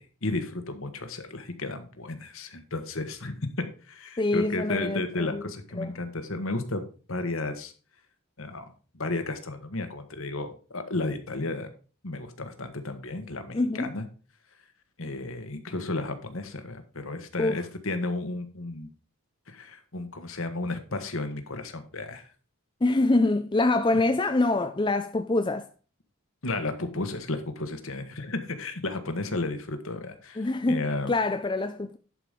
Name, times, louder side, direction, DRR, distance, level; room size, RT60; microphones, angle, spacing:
voice 1, 0.0-3.3 3.9-6.8 7.1-7.7 8.4-8.6 8.9-11.7 12.0-14.0 15.0-18.9 19.5-22.3 26.4-31.1, left 2 dB, 65° left, 1.4 m, -33 dB
voice 2, 4.2-5.4 5.8-5.9 13.5-13.9 17.4-17.6 22.8-25.7 30.4-32.0, left 2 dB, 20° left, 0.5 m, -25 dB
11.0 x 5.1 x 5.2 m
head